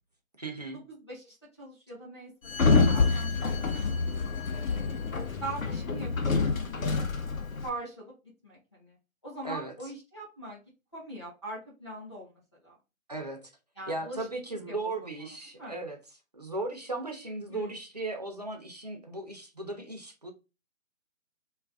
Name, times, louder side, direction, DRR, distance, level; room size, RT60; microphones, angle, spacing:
voice 1, 0.4-0.8 9.4-9.7 13.1-13.5 13.9-16.0 16.3-20.3, right 2 dB, 30° right, 0.4 m, -36 dB
voice 2, 0.9-3.8 4.5-5.1 5.4-7.3 7.6-8.1 8.4-9.0 9.2-10.6 10.9-12.8 13.8-14.3 14.7-14.9 15.2-15.3 15.6-15.8 17.5-17.7, right 2 dB, 20° left, 0.5 m, -42 dB
Sliding door, 2.5-7.7, left 4 dB, 80° left, 0.7 m, -27 dB
2.3 x 2.1 x 3.4 m
figure-of-eight pair, 145°, 40 cm